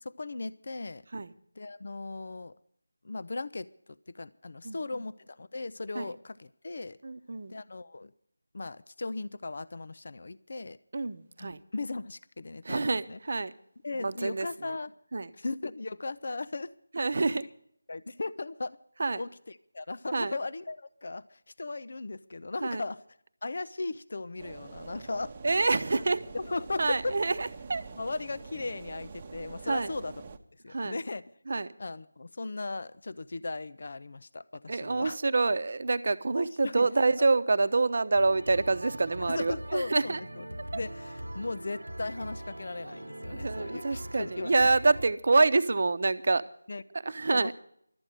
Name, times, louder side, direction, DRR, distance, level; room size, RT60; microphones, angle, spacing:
voice 1, 0.0-1.0 1.6-2.5 3.0-3.7 4.1-7.0 7.5-8.1 8.5-10.8 11.4-13.2 13.8-14.9 15.4-16.7 17.3-17.5 17.9-18.8 19.1-23.0 23.4-25.3 26.3-27.1 28.0-30.1 30.6-31.2 31.8-35.2 36.3-36.9 37.2-37.3 39.3-40.4 40.7-44.7 46.7-46.8 47.3-47.5, left 3 dB, 50° left, 0.5 m, -37 dB
voice 2, 4.6-5.0 5.9-6.0 7.0-7.6 10.9-11.6 12.6-13.5 14.0-14.5 15.1-15.3 16.9-17.4 19.0-19.2 20.1-20.3 22.6-22.8 25.4-26.2 26.8-27.8 29.6-29.9 30.7-31.0 31.5-31.7 34.7-40.2 40.7-40.8 43.3-46.4 47.0-47.5, right 3 dB, 50° right, 0.8 m, -27 dB
sound 1, 24.4-30.4, right 4 dB, 25° right, 0.9 m, -46 dB
sound 2, 38.1-45.1, right 1 dB, 90° right, 1.0 m, -41 dB
12.5 x 8.8 x 9.9 m
figure-of-eight pair, 165°, 0 cm